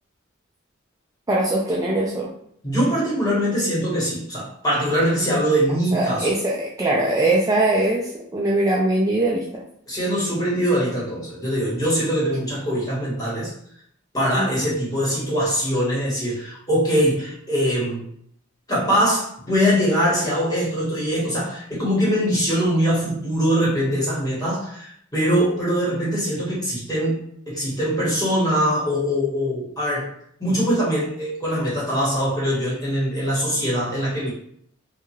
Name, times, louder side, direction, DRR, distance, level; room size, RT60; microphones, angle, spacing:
voice 1, 1.3-2.3 5.9-9.6 14.4-14.5, right 2 dB, 15° right, -4 dB, 0.3 m, -21 dB
voice 2, 2.6-6.3 9.9-13.5 14.1-18.0 18.7-30.1 30.4-34.3, equal, 20° left, -6 dB, 1.2 m, -22 dB
2.7 x 2.3 x 3.0 m, 0.67 s
head